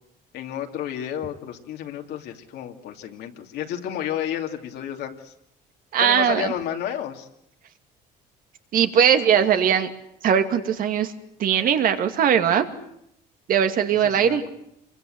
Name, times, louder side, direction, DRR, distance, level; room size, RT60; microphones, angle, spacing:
voice 1, 0.3-5.3 6.0-7.3 14.0-14.5, left 10 dB, 70° left, 4 dB, 2.7 m, -31 dB
voice 2, 5.9-6.5 8.7-9.9 10.2-11.1 11.4-12.6 13.5-14.4, right 8 dB, 55° right, 7 dB, 2.4 m, -20 dB
27.0 x 23.5 x 7.9 m, 0.76 s
cardioid pair, 125°, 17 cm